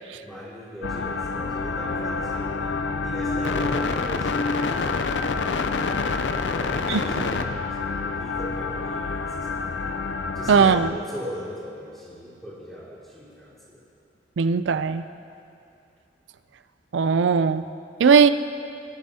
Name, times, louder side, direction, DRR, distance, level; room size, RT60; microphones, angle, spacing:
voice 1, 0.2-2.7 3.0-5.6 6.4-9.7 10.3-13.8, equal, 5° left, -14 dB, 3.2 m, -38 dB
sound 1, 0.8-10.9, left 4 dB, 70° left, 0.6 m, -27 dB
voice 2, 10.5-10.9 14.4-15.0 16.9-17.6 18.0-18.3, right 6 dB, 85° right, 12 dB, 0.4 m, -18 dB
21.0 x 9.7 x 2.8 m, 2.5 s
head